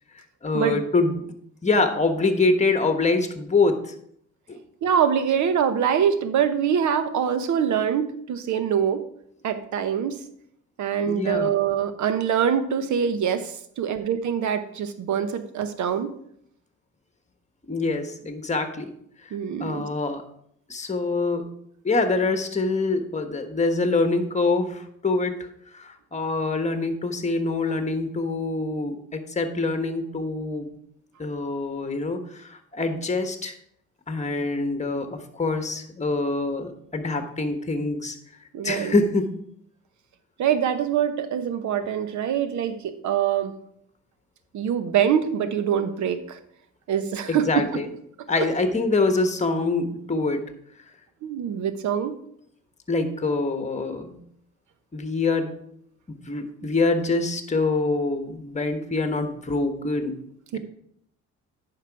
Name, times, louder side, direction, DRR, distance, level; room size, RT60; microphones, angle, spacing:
voice 1, 0.4-1.2 1.6-3.9 4.5-4.6 11.0-11.5 17.7-18.9 19.6-20.2 20.7-21.5 21.8-25.5 25.7-30.7 31.2-33.5 34.1-38.2 38.6-39.3 47.3-47.9 48.3-50.4 52.9-54.2 54.9-55.5 56.1-60.1, left 3 dB, 25° left, 7 dB, 1.3 m, -25 dB
voice 2, 4.8-9.0 9.4-10.2 10.8-16.1 19.3-19.8 38.5-39.0 40.4-43.5 44.5-46.4 46.9-47.8 48.4-48.5 51.2-52.1 60.5-60.6, right 8 dB, 70° right, 10 dB, 1.0 m, -24 dB
9.3 x 5.8 x 4.7 m, 0.70 s
cardioid pair, 90°, 30 cm